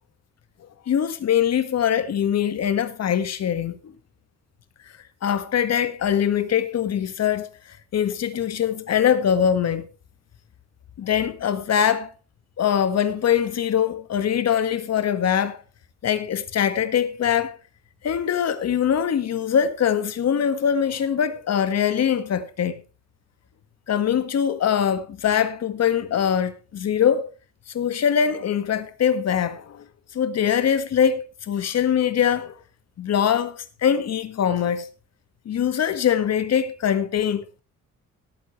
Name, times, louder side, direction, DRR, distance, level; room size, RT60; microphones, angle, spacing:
voice 1, 0.9-3.9 5.2-7.5 7.9-9.8 11.0-12.1 12.6-15.6 16.0-17.5 18.0-22.8 23.9-27.3 27.7-29.8 30.1-32.6 33.0-34.9 35.4-37.6, left 8 dB, 60° left, 1.7 m, -22 dB
18.5 x 8.6 x 3.2 m
cardioid pair, 90°, 30 cm